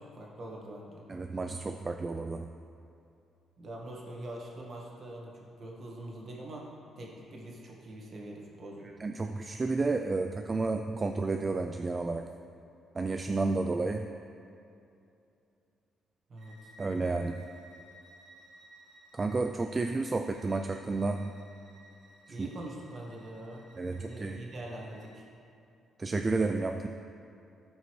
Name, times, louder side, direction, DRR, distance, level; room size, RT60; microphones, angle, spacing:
voice 1, 0.0-1.0 3.6-8.9 16.3-16.7 22.3-25.3, right 1 dB, 50° right, -2 dB, 1.7 m, -44 dB
voice 2, 1.1-2.5 9.0-12.3 12.9-14.1 16.8-17.4 19.1-21.3 22.3-22.5 23.8-24.4 26.0-26.9, right 3 dB, 30° right, 5 dB, 0.3 m, -31 dB
Bowed string instrument, 16.4-25.2, right 1 dB, 80° right, 1.9 m, -57 dB
14.0 x 5.4 x 3.2 m, 2.7 s
cardioid pair, 90°, 0 cm